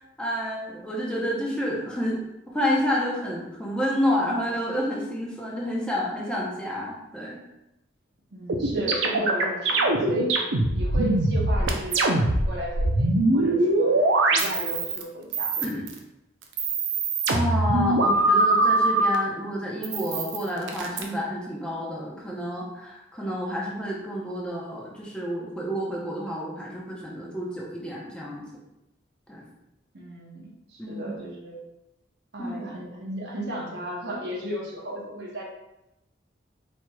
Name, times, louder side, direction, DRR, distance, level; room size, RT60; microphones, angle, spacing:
voice 1, 0.2-2.2 2.5-7.4 15.6-15.8 17.3-28.4 29.3-29.4 30.8-31.1 32.4-32.7, equal, 5° left, -4 dB, 0.7 m, -29 dB
voice 2, 8.3-10.3 10.7-14.0 14.3-15.6 29.9-31.6 32.3-35.4, right 1 dB, 60° right, -2 dB, 0.9 m, -34 dB
sound 1, 8.5-15.0 15.3-16.0 16.4-19.2 19.8-21.0, right 2 dB, 90° right, 0.6 m, -22 dB
4.5 x 4.4 x 2.3 m, 0.92 s
head